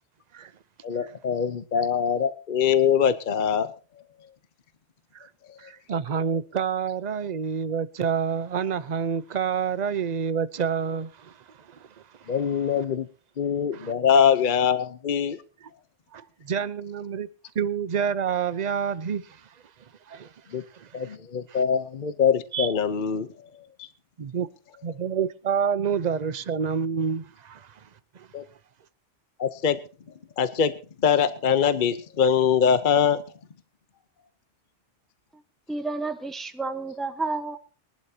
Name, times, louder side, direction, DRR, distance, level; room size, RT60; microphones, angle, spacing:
voice 1, 0.8-3.7 5.5-5.6 12.3-13.1 13.4-15.4 20.5-20.6 20.9-23.3 23.8-23.9 28.3-28.4 29.4-29.8 30.4-30.7 31.0-33.2, left 7 dB, 45° left, 0.9 m, -23 dB
voice 2, 5.6-11.3 11.7-11.8 12.3-12.4 13.7-13.9 16.1-17.3 17.5-19.4 20.1-20.3 20.7-21.1 21.5-21.6 22.5-22.7 24.2-24.5 24.8-27.7 28.1-28.3, right 7 dB, 40° right, 0.8 m, -28 dB
voice 3, 35.7-37.6, right 3 dB, ahead, 1.0 m, -30 dB
23.0 x 11.5 x 2.9 m
omnidirectional pair, 1.2 m